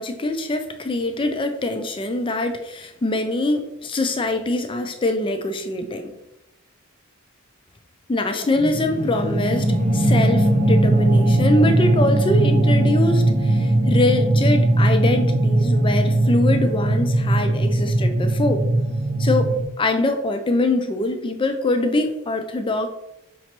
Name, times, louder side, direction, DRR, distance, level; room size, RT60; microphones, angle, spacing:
voice 1, 0.0-6.1 8.1-18.6 19.2-22.9, left 2 dB, 25° left, 6 dB, 0.4 m, -23 dB
sound 1, 8.5-19.6, right 1 dB, 35° right, 0.5 m, -19 dB
5.2 x 3.0 x 2.9 m, 0.90 s
head